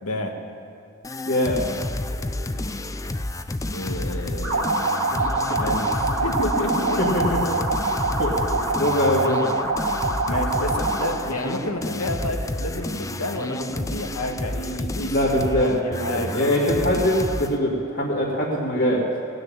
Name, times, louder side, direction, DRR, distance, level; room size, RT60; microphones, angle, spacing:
voice 1, 0.0-0.4 3.7-5.1 5.6-7.0 10.2-16.5, left 1 dB, 85° left, 3 dB, 1.6 m, -30 dB
sound 1, 1.0-17.6, left 2 dB, 15° left, 0.4 m, -30 dB
voice 2, 1.3-1.6 5.1-5.2 7.0-7.5 8.2-9.5 15.1-19.0, equal, 40° left, -8 dB, 2.2 m, -23 dB
sound 2, 4.4-11.2, right 3 dB, 75° right, 3.1 m, -25 dB
18.0 x 6.5 x 8.9 m, 2.5 s
head